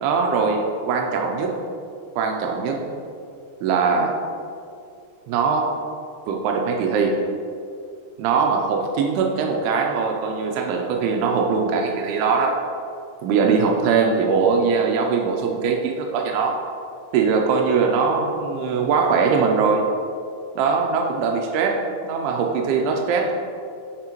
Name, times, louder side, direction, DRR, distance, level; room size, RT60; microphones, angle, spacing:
voice 1, 0.0-1.6 2.2-3.0 3.6-4.2 5.3-5.8 6.3-7.2 8.2-12.6 13.2-16.6 17.1-19.9 20.6-23.3, right 5 dB, 85° right, 2 dB, 2.6 m, -21 dB
11.0 x 4.9 x 3.0 m, 2.4 s
omnidirectional pair, 4.5 m